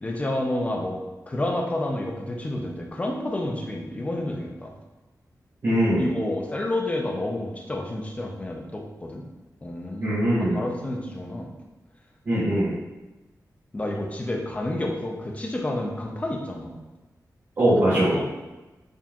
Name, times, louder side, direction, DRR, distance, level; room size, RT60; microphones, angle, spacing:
voice 1, 0.0-4.7 6.0-9.2 9.6-10.2 10.5-11.5 13.7-16.8 17.9-18.2, left 1 dB, 20° left, 0 dB, 0.5 m, -29 dB
voice 2, 5.6-6.0 10.0-10.6 12.3-12.7 17.6-18.1, right 1 dB, 45° right, -10 dB, 1.0 m, -21 dB
4.2 x 3.6 x 2.4 m, 1.1 s
wide cardioid pair, 155°, 7 cm